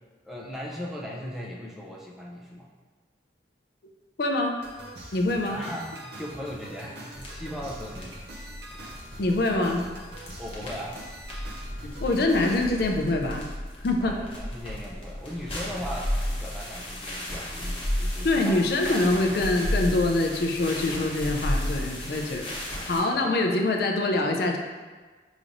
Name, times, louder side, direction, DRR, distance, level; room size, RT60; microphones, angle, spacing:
voice 1, 0.2-2.7 5.5-8.2 10.4-11.0 14.0-19.5 23.1-23.3, equal, ahead, -4 dB, 0.5 m, -38 dB
voice 2, 4.2-4.6 5.1-5.6 9.2-9.8 11.8-13.5 13.8-14.1 18.2-24.6, left 2 dB, 60° left, 2 dB, 0.4 m, -25 dB
sound 1, 4.6-13.0, right 1 dB, 65° right, 0.6 m, -44 dB
sound 2, 7.2-23.0, equal, 35° left, 0.9 m, -34 dB
5.0 x 3.0 x 2.5 m, 1.4 s
head